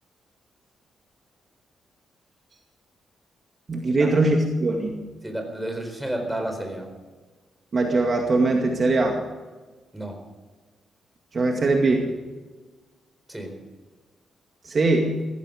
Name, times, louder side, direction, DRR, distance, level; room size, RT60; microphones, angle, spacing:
voice 1, 3.7-5.0 7.7-9.2 11.3-12.1 14.6-15.2, right 2 dB, 40° right, 2 dB, 2.2 m, -21 dB
voice 2, 5.2-6.9 9.9-10.2 13.3-13.5, right 1 dB, 5° right, 4 dB, 4.3 m, -31 dB
16.5 x 16.0 x 5.1 m, 1.3 s
cardioid pair, 105°, 0 cm